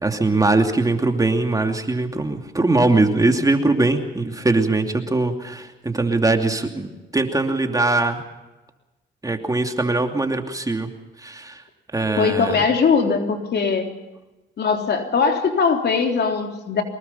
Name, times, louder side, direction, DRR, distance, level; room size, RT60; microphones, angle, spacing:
voice 1, 0.0-8.2 9.2-10.9 11.2-11.6 11.9-12.6, right 2 dB, 15° right, 4 dB, 2.7 m, -21 dB
voice 2, 12.2-13.9 14.6-16.8, left 5 dB, 55° left, 4 dB, 3.6 m, -20 dB
24.5 x 21.0 x 5.7 m, 1.1 s
cardioid pair, 90°, 20 cm